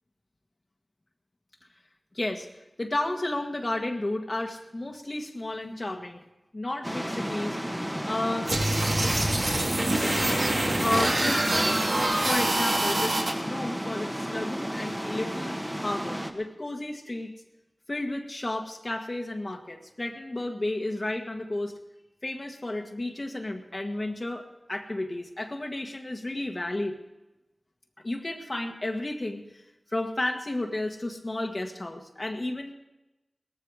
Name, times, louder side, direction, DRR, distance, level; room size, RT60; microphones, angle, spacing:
voice 1, 2.1-2.5 2.8-6.2 6.5-7.6 8.0-8.5 10.8-11.8 12.2-17.3 17.9-21.7 22.2-26.9 28.0-29.6 29.9-32.7, left 2 dB, 40° left, 2 dB, 1.5 m, -32 dB
sound 1, 6.8-16.3, equal, 10° right, 1.6 m, -33 dB
sound 2, 8.5-13.3, right 1 dB, 60° right, 3.0 m, -25 dB
19.0 x 14.5 x 4.9 m, 0.98 s
wide cardioid pair, 70°, 0 cm